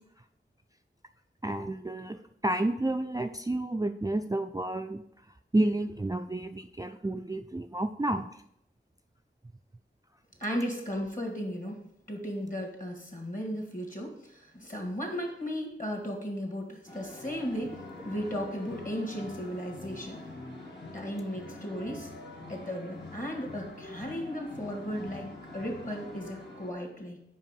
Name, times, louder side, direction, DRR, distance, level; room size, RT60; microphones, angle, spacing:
voice 1, 1.4-5.0 5.5-8.2, right 1 dB, 20° right, 6 dB, 0.4 m, -30 dB
voice 2, 10.4-11.8 12.1-17.8 18.0-20.3 20.9-22.1 22.5-27.2, equal, 45° left, 2 dB, 2.0 m, -35 dB
sound 1, 16.9-26.7, left 2 dB, 60° left, 1.7 m, -45 dB
5.5 x 4.9 x 5.3 m, 0.77 s
wide cardioid pair, 40°, 20 cm